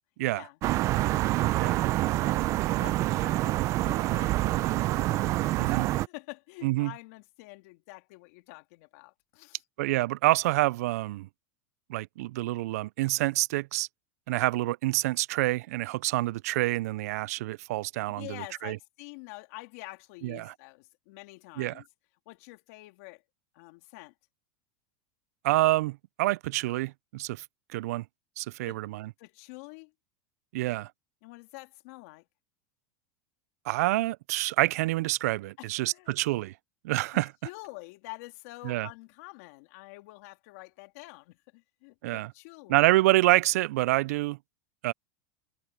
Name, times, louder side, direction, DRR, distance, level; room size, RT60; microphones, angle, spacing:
sound 1, 0.6-6.1, right 16 dB, 40° right, 0.6 m, -26 dB
voice 1, 2.2-3.6 3.8-9.6 18.2-21.9 22.3-23.2 23.5-24.1 28.6-28.8 29.2-29.9 31.2-32.2 35.6-36.2 37.4-42.8, left 24 dB, 60° left, 2.9 m, -47 dB
voice 2, 5.6-5.9 6.6-6.9 9.8-11.3 11.9-13.9 14.3-18.8 20.2-20.5 21.6-21.8 25.4-27.4 27.7-28.0 28.4-29.1 30.5-30.9 33.7-36.5 36.8-37.3 38.6-38.9 42.0-42.3 42.7-44.4 44.8-44.9, right 18 dB, 75° right, 0.3 m, -27 dB
supercardioid pair, 150°, 8 cm